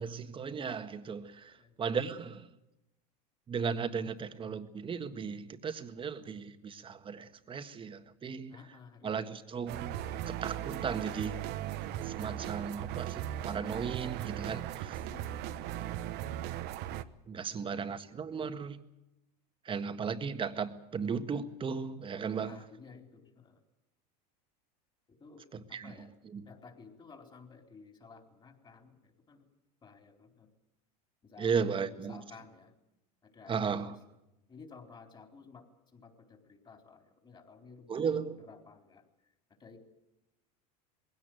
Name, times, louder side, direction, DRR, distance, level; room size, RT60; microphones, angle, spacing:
voice 1, 0.0-2.5 3.5-8.6 9.0-11.3 12.0-15.0 17.3-18.8 19.6-22.6 25.5-26.5 31.4-32.2 33.5-33.9 37.9-38.5, right 6 dB, 25° right, 1.6 m, -36 dB
voice 2, 8.5-9.1 9.5-9.6 10.1-10.2 11.0-11.9 15.1-15.8 17.4-17.8 22.4-23.6 25.1-26.1 26.5-29.5 29.8-30.5 31.2-32.7 33.2-34.0 34.5-39.0 39.6-39.8, left 5 dB, 25° left, 4.1 m, -54 dB
sound 1, 9.7-17.0, right 12 dB, 55° right, 1.1 m, -38 dB
21.0 x 17.0 x 9.3 m
supercardioid pair, 115°, 21 cm